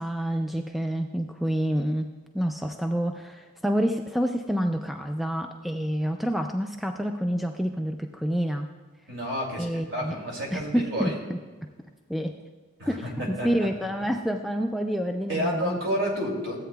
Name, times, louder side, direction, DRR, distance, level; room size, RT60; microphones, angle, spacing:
voice 1, 0.0-8.7 9.6-10.2 10.5-11.4 12.1-12.4 12.9-15.8, equal, ahead, 4 dB, 0.3 m, -28 dB
voice 2, 9.1-11.2 12.8-13.7 15.3-16.6, equal, 70° right, -2 dB, 2.6 m, -30 dB
15.0 x 8.4 x 2.3 m, 1.4 s
head